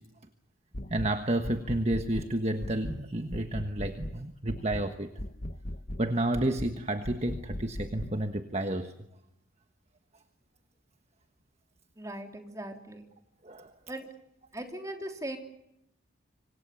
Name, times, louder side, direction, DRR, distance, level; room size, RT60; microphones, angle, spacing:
sound 1, 0.7-1.1 1.4-2.3 2.6-3.0 3.3-4.2 4.5-4.9 5.2-6.0 6.3-6.7 7.0-8.1, left 1 dB, 40° left, 1.4 m, -38 dB
voice 1, 0.9-5.1 6.0-8.9 13.4-13.7, right 1 dB, 30° right, 7 dB, 1.3 m, -30 dB
voice 2, 12.0-13.0 13.9-14.1 14.5-15.4, right 1 dB, 15° right, 4 dB, 3.4 m, -39 dB
26.0 x 25.5 x 7.0 m, 0.82 s
head